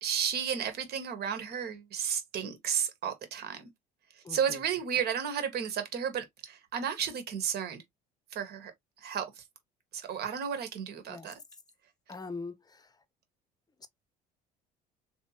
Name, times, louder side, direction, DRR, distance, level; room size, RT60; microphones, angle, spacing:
voice 1, 0.0-3.7 4.3-7.8 8.3-8.7 9.0-9.4 9.9-11.3, right 8 dB, 55° right, 1.2 m, -33 dB
voice 2, 4.2-4.6 11.1-11.3 12.1-12.9 13.8-13.9, left 3 dB, 20° left, 0.7 m, -42 dB
3.2 x 2.8 x 2.8 m
hypercardioid pair, 70°, 19 cm